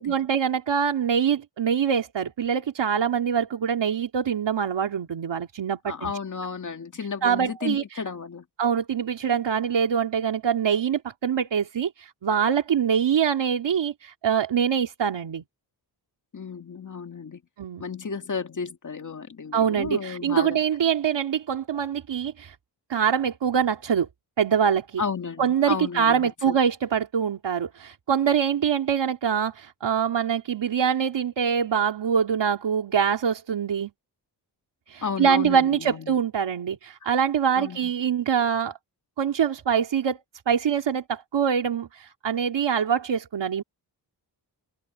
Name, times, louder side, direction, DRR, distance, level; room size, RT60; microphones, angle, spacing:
voice 1, 0.0-6.1 7.2-8.0 8.6-15.4 17.6-17.8 19.5-22.5 22.9-24.1 24.4-25.0 25.4-33.9 34.9-38.7 39.2-40.2 40.5-43.6, right 7 dB, 85° right, 2.7 m, -24 dB
voice 2, 5.9-8.4 16.3-17.4 17.8-20.6 25.0-26.6 35.0-36.2 37.6-37.9, left 5 dB, 45° left, 2.0 m, -33 dB
wide cardioid pair, 130°, 42 cm